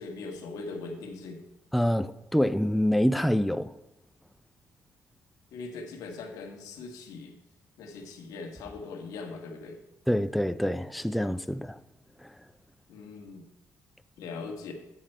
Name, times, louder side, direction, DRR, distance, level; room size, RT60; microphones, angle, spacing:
voice 1, 0.0-1.4 5.5-7.3 7.8-9.8 12.9-13.5 14.2-14.7, left 3 dB, 85° left, 1.5 m, -40 dB
voice 2, 1.7-3.7 10.1-11.8 12.2-12.3, equal, ahead, 0.4 m, -26 dB
9.2 x 7.0 x 4.4 m
cardioid pair, 75°, 6 cm